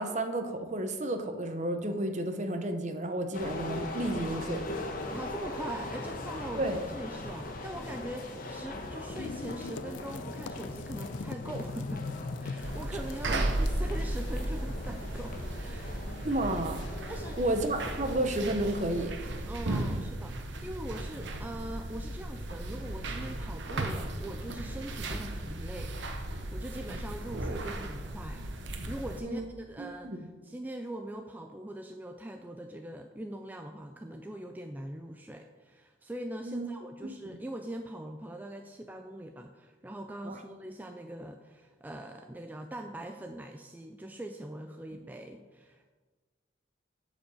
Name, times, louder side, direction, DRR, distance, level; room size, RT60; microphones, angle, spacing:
voice 1, 0.0-4.6 6.5-6.8 16.2-16.8 17.4-19.1 29.2-29.5 29.8-30.2 36.4-36.7 37.0-37.1 40.2-40.4, right 1 dB, 35° right, 6 dB, 0.8 m, -31 dB
sound 1, 3.3-19.1, left 1 dB, 45° left, 1.1 m, -40 dB
sound 2, 5.0-18.2, left 4 dB, 65° left, 0.3 m, -45 dB
voice 2, 5.1-15.9 17.1-17.4 19.5-28.5 28.9-45.9, right 1 dB, 10° right, 4 dB, 0.3 m, -42 dB
sound 3, 12.6-29.2, right 1 dB, 65° right, 1.0 m, -35 dB
8.8 x 5.1 x 6.9 m, 1.4 s
head